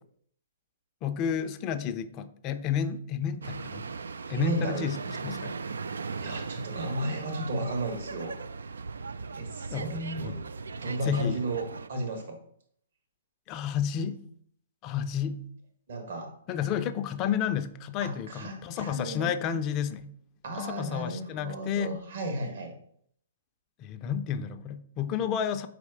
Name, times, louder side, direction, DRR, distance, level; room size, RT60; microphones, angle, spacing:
voice 1, 1.0-3.9 4.3-5.6 9.7-10.4 11.0-11.4 13.5-14.2 14.8-15.4 16.5-20.1 20.6-22.0 23.8-25.7, left 8 dB, 30° left, 10 dB, 0.4 m, -31 dB
sound 1, 3.4-11.9, right 4 dB, 80° right, 0.3 m, -38 dB
voice 2, 4.3-4.9 6.2-8.3 9.4-10.4 10.7-12.4 15.9-16.4 18.0-19.3 20.4-22.8, right 1 dB, 60° right, 4 dB, 1.4 m, -34 dB
4.8 x 4.2 x 4.8 m, 0.65 s
hypercardioid pair, 125°, 0 cm